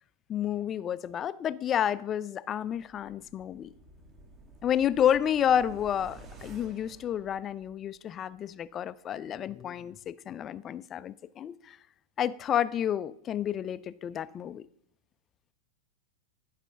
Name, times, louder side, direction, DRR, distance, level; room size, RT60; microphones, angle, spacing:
voice 1, 0.3-3.7 4.6-11.8 12.2-14.7, left 9 dB, 25° left, 0.3 m, -30 dB
sound 1, 2.8-8.0 8.3-8.4, right 3 dB, 30° right, 1.1 m, -52 dB
11.0 x 4.9 x 5.7 m
figure-of-eight pair, 90°, 0 cm